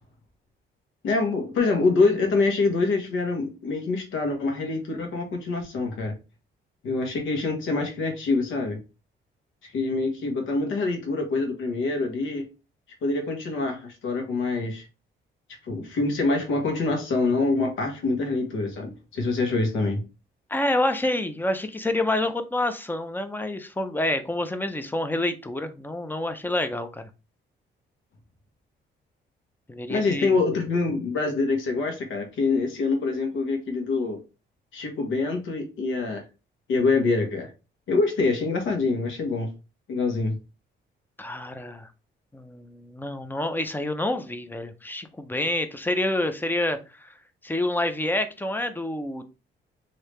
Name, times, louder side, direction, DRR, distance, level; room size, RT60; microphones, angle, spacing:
voice 1, 1.0-6.1 6.8-8.8 9.6-12.5 13.0-14.8 15.7-20.0 29.9-34.2 34.7-36.2 36.7-37.5 37.9-39.5 39.9-40.4, left 3 dB, 80° left, 3 dB, 1.2 m, -25 dB
voice 2, 20.5-27.1 29.7-30.4 41.2-41.9 42.3-47.1 47.4-49.3, left 1 dB, 10° left, 9 dB, 0.5 m, -28 dB
3.2 x 2.8 x 3.1 m, 0.29 s
cardioid pair, 90°, 20 cm